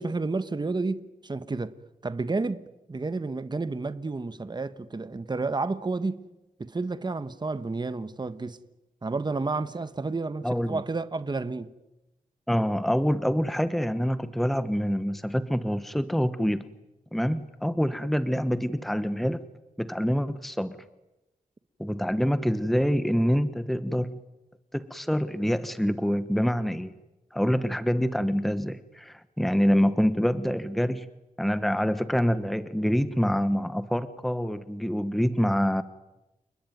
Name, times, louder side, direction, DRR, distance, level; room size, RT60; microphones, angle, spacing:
voice 1, 0.0-1.7 2.0-6.3 6.6-8.6 9.0-11.7, right 3 dB, 30° right, 1.2 m, -31 dB
voice 2, 10.4-10.8 12.5-16.6 17.1-19.4 19.8-20.8 21.8-24.1 24.7-26.9 27.3-31.0 31.4-35.8, equal, ahead, 1.2 m, -26 dB
30.0 x 20.0 x 9.4 m
wide cardioid pair, 90°, 14 cm